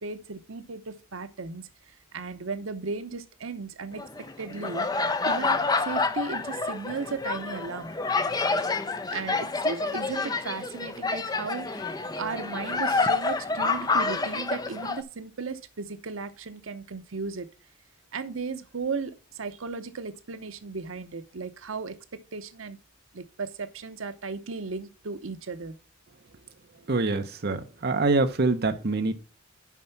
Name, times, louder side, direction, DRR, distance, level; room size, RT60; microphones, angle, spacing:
voice 1, 0.0-4.0 4.4-4.9 5.2-8.0 9.1-17.5 18.1-22.0 22.3-22.8 23.1-25.8, right 4 dB, 85° right, 0.8 m, -36 dB
sound 1, 4.0-15.0, left 3 dB, 20° left, 0.6 m, -28 dB
voice 2, 26.9-29.1, right 3 dB, 50° right, 0.8 m, -25 dB
7.3 x 5.5 x 5.7 m
head